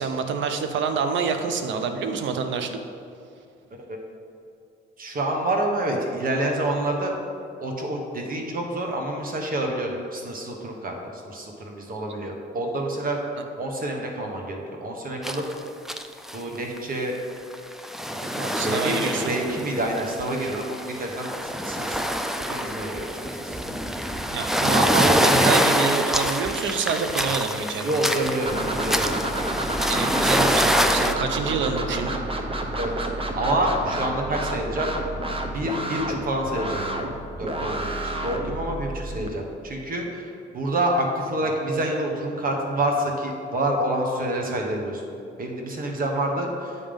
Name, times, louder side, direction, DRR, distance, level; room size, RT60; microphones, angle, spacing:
voice 1, 0.0-2.8 13.4-13.5 18.5-19.3 24.3-28.1 29.9-32.2, right 5 dB, 70° right, 6 dB, 0.7 m, -27 dB
voice 2, 5.0-7.1 7.6-13.2 13.6-15.4 16.3-17.1 18.1-22.1 22.5-23.6 27.8-29.2 32.8-33.1 33.4-34.9 35.5-36.8 37.4-45.0 45.4-46.8, right 1 dB, 45° right, 1 dB, 1.3 m, -28 dB
sound 1, 15.2-15.5 15.8-16.4 16.8-16.9 17.5-31.1, equal, ahead, 0.4 m, -25 dB
sound 2, 28.5-39.3, right 1 dB, 30° right, 0.7 m, -30 dB
8.4 x 3.7 x 5.2 m, 2.5 s
cardioid pair, 90°, 20 cm